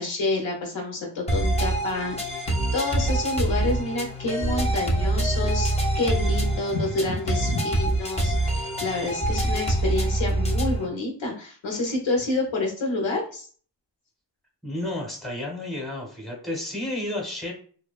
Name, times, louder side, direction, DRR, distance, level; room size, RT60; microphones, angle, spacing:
voice 1, 0.0-13.5, left 2 dB, 80° left, 0 dB, 0.9 m, -28 dB
sound 1, 1.3-10.9, right 1 dB, 15° left, 0.3 m, -25 dB
voice 2, 14.6-17.5, left 1 dB, ahead, -3 dB, 0.8 m, -31 dB
2.7 x 2.2 x 2.3 m, 0.44 s
wide cardioid pair, 105°, 45 cm